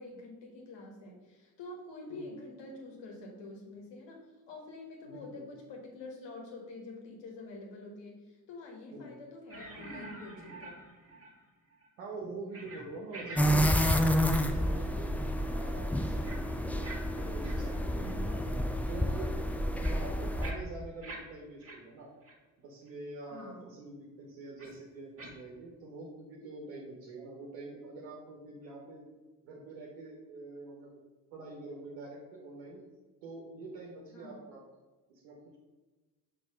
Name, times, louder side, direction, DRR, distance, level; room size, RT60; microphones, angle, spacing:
voice 1, 0.0-10.8 23.3-23.7 34.1-34.4, left 2 dB, 60° left, 0 dB, 1.5 m, -47 dB
voice 2, 5.0-5.5 8.9-9.2 12.0-16.9 17.2-18.4 18.9-19.4 19.8-22.1 22.6-29.1 29.4-31.0 31.3-32.8 33.2-34.6 35.2-35.6, right 2 dB, 75° right, -1 dB, 1.0 m, -45 dB
sound 1, 9.5-11.4 11.7-11.9 12.5-12.9 13.1-13.4 13.7-14.6 14.9-15.1 16.2-16.4 16.8-17.0 17.4-17.6 18.0-18.1 18.7-18.8 19.2-21.2 21.6-21.8 22.2-22.3 22.9-23.0 24.6-24.7 25.2-25.3, right 2 dB, 30° right, 1.6 m, -46 dB
sound 2, 13.4-20.5, equal, 5° left, 0.4 m, -29 dB
6.1 x 3.0 x 5.5 m, 1.2 s
figure-of-eight pair, 40°, 48 cm